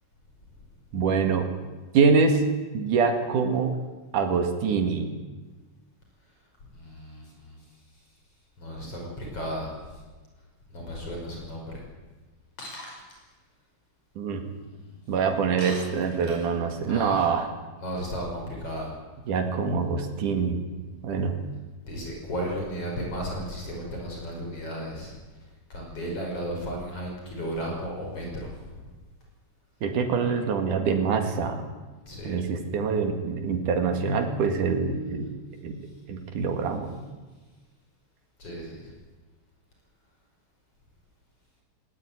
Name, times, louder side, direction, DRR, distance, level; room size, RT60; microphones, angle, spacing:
voice 1, 0.9-1.5 1.9-2.4 2.7-3.7 4.1-5.1 14.2-14.4 15.1-17.5 19.3-20.6 21.0-21.4 29.8-31.6 32.2-35.3 35.6-35.8 36.1-37.1, right 5 dB, 85° right, 5 dB, 3.6 m, -25 dB
voice 2, 6.7-7.6 8.6-9.9 10.7-11.8 14.7-15.0 16.9-17.3 17.8-18.9 21.1-21.2 21.9-25.1 25.7-28.8 32.1-32.4 38.4-38.9, equal, 45° left, -1 dB, 6.4 m, -34 dB
Shatter, 12.6-13.2 15.6-16.6, left 1 dB, 70° left, 7.0 m, -40 dB
18.5 x 18.5 x 9.5 m, 1.3 s
omnidirectional pair, 3.6 m